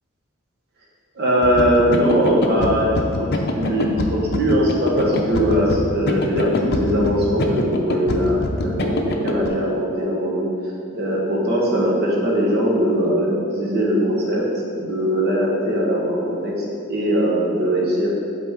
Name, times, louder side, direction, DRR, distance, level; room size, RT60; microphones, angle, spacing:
voice 1, 1.1-2.9 3.2-10.5 10.9-14.4 14.8-18.1, equal, 50° right, -4 dB, 1.4 m, -20 dB
sound 1, 1.4-9.5, left 2 dB, 55° left, 0.6 m, -24 dB
8.4 x 4.2 x 3.7 m, 2.6 s
head